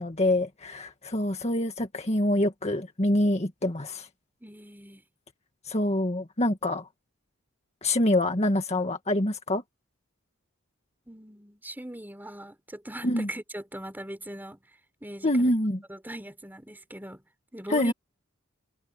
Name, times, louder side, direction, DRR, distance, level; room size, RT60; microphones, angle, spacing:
voice 1, 0.0-4.1 5.7-6.9 7.8-9.6 13.0-13.3 15.2-15.8 17.7-17.9, left 1 dB, 30° left, 1.8 m, -25 dB
voice 2, 4.4-5.0 11.1-14.6 15.0-15.5 15.9-17.2 17.5-17.9, right 1 dB, 10° right, 3.9 m, -40 dB
head